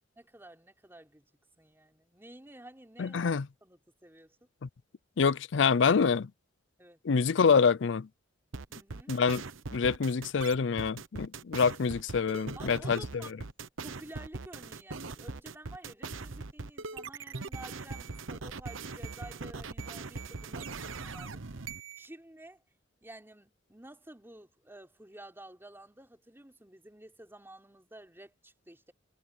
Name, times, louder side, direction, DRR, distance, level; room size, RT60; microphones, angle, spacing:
voice 1, 0.2-1.3 1.6-3.3 3.6-4.4 6.8-7.0 8.7-9.1 12.6-13.3 13.8-21.4 22.0-22.6 23.0-28.9, right 1 dB, 10° right, 3.8 m, -51 dB
voice 2, 3.0-3.5 5.2-6.3 7.0-8.1 9.1-9.4 9.7-13.2, left 5 dB, 65° left, 0.5 m, -26 dB
sound 1, 8.5-22.1, right 3 dB, 85° right, 1.1 m, -40 dB
head